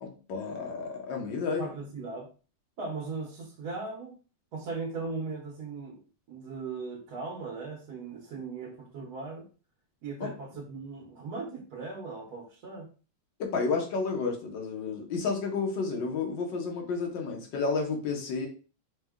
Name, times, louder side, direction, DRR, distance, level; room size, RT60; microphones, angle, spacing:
voice 1, 0.0-1.7 10.2-10.3 13.4-18.5, left 4 dB, 85° left, 1 dB, 1.7 m, -31 dB
voice 2, 1.6-2.3 2.8-4.2 4.5-6.0 6.3-9.5 10.0-12.9, right 4 dB, 65° right, -3 dB, 1.2 m, -38 dB
4.1 x 2.2 x 3.5 m, 0.37 s
omnidirectional pair, 1.9 m